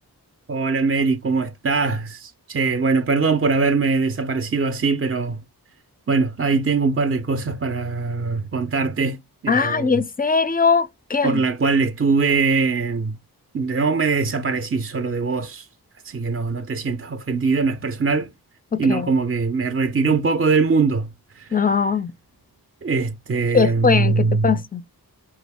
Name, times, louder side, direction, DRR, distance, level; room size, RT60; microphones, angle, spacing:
voice 1, 0.5-5.4 6.1-9.2 9.4-10.0 11.2-13.2 13.5-15.7 16.0-18.3 18.8-21.6 22.8-24.6, right 4 dB, 35° right, 0.5 m, -22 dB
voice 2, 9.5-11.4 18.7-19.1 21.5-22.1 23.5-24.8, left 5 dB, 25° left, 0.4 m, -20 dB
5.1 x 2.3 x 3.4 m
wide cardioid pair, 50°, 39 cm